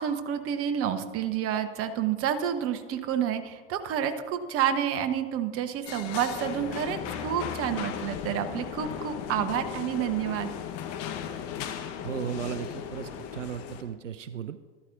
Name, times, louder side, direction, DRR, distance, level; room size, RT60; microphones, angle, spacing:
voice 1, 0.0-10.5, right 9 dB, 40° right, 9 dB, 1.0 m, -29 dB
sound 1, 5.9-13.8, left 9 dB, 45° left, 1.1 m, -36 dB
voice 2, 12.0-14.6, right 9 dB, 85° right, 13 dB, 0.5 m, -35 dB
13.5 x 12.5 x 2.6 m, 1.5 s
figure-of-eight pair, 85°, 36 cm